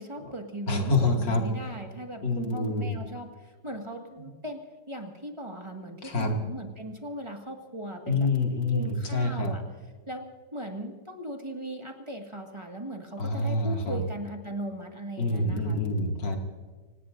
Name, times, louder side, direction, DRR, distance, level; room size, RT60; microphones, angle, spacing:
voice 1, 0.0-8.3 8.7-9.6 10.1-15.8, right 1 dB, 15° right, 3 dB, 1.8 m, -38 dB
voice 2, 0.7-1.4 2.2-2.9 6.0-6.3 8.1-9.5 13.2-14.0 15.2-16.4, left 2 dB, 85° left, 2 dB, 3.1 m, -26 dB
26.0 x 18.5 x 2.6 m, 1.4 s
omnidirectional pair, 1.9 m